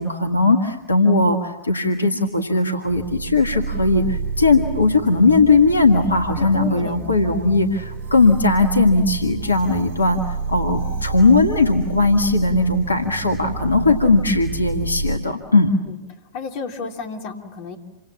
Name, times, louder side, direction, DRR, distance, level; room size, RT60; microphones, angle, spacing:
voice 1, 0.0-15.7, left 3 dB, 80° left, 6 dB, 1.8 m, -18 dB
sound 1, 2.9-15.2, right 4 dB, 55° right, 3.5 m, -30 dB
voice 2, 6.4-7.3 15.8-16.0 16.3-17.8, left 5 dB, 45° left, 4 dB, 3.1 m, -32 dB
28.5 x 25.5 x 7.4 m, 1.0 s
figure-of-eight pair, 90°, 0 cm